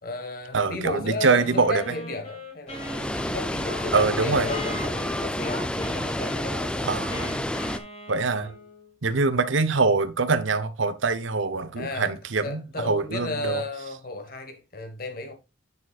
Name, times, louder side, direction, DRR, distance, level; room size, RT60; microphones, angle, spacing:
voice 1, 0.0-3.0 3.3-6.8 8.4-8.6 11.8-12.1 12.4-15.3, left 2 dB, 50° left, 1.5 m, -34 dB
voice 2, 0.5-1.8 3.9-4.5 6.8-7.3 8.1-8.5 9.0-13.6, right 4 dB, 80° right, 0.8 m, -24 dB
Wind instrument woodwind instrument, 1.3-8.9, left 1 dB, 35° left, 2.4 m, -40 dB
Water, 2.7-7.8, left 1 dB, 5° left, 0.4 m, -29 dB
8.6 x 6.8 x 2.4 m
head